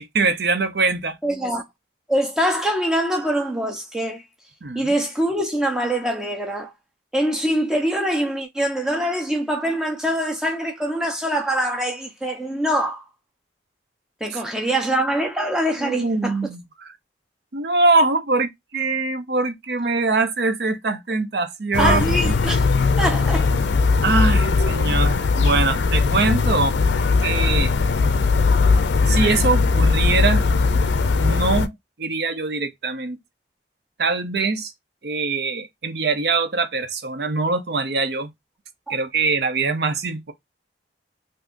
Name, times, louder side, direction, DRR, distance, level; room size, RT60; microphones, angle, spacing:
voice 1, 0.0-1.2 4.6-4.9 15.8-16.6 17.5-22.4 24.0-26.8 27.2-27.7 29.1-30.4 31.2-33.2 34.0-34.7 35.0-38.3 38.9-40.3, right 3 dB, 65° right, 0.7 m, -23 dB
voice 2, 1.2-1.7 2.1-4.2 4.7-6.7 7.1-13.0 14.2-16.3 21.8-22.7 23.0-23.5 38.9-39.0, right 1 dB, 5° right, 0.7 m, -24 dB
sound 1, 21.7-31.7, left 4 dB, 75° left, 0.4 m, -19 dB
3.5 x 2.7 x 2.5 m
head